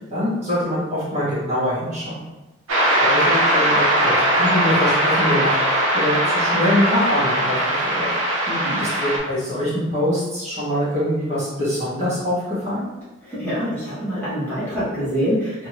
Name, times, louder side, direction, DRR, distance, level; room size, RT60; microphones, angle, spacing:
voice 1, 0.1-2.2 3.0-8.1 8.8-12.9, left 1 dB, 30° right, -10 dB, 1.1 m, -24 dB
sound 1, 2.7-9.2, right 1 dB, 85° right, 0.7 m, -20 dB
voice 2, 8.5-8.8 13.2-15.7, equal, 10° left, -12 dB, 0.9 m, -25 dB
2.5 x 2.3 x 3.1 m, 1.1 s
head